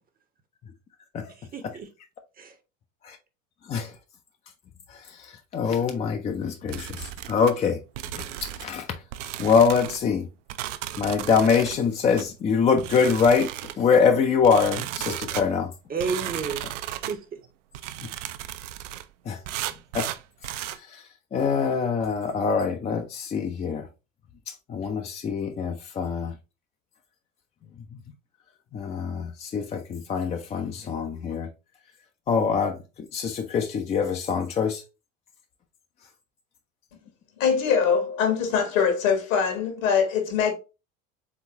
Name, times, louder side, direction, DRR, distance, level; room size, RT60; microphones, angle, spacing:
voice 1, 1.3-1.9 2.4-2.6 15.9-17.4, right 5 dB, 20° right, 0.7 m, -32 dB
voice 2, 4.9-7.8 8.2-8.9 9.4-10.3 11.0-13.5 13.8-15.7 19.3-19.4 19.9-20.1 20.9-21.0 21.3-23.9 24.5-26.3 28.7-31.5 32.3-34.8, left 6 dB, 15° left, 0.4 m, -24 dB
sound 1, 6.7-7.5 8.0-8.8 9.1-10.0 10.5-11.8 12.2-12.3 12.8-13.8 14.4-15.5 16.0-17.2 17.7-19.1 19.5-20.8, right 12 dB, 60° right, 0.5 m, -35 dB
voice 3, 37.4-40.5, left 6 dB, 65° left, 1.5 m, -23 dB
3.9 x 3.7 x 2.8 m
figure-of-eight pair, 65°, 41 cm